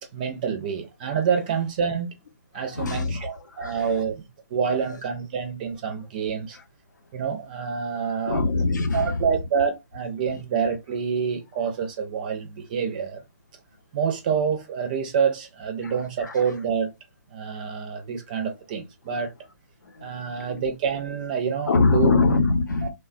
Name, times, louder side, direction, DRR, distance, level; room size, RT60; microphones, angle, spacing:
voice 1, 0.1-2.1 2.5-6.6 7.1-8.4 8.9-13.2 13.9-16.9 17.3-19.3 20.0-22.1 22.8-22.9, right 6 dB, 30° right, 0.4 m, -27 dB
voice 2, 2.7-3.3 3.6-3.7 8.3-9.2 15.8-15.9 16.2-16.3 20.0-20.1 20.5-20.6 21.7-22.9, left 3 dB, 75° left, 0.7 m, -22 dB
3.1 x 2.2 x 2.5 m
hypercardioid pair, 150°, 10 cm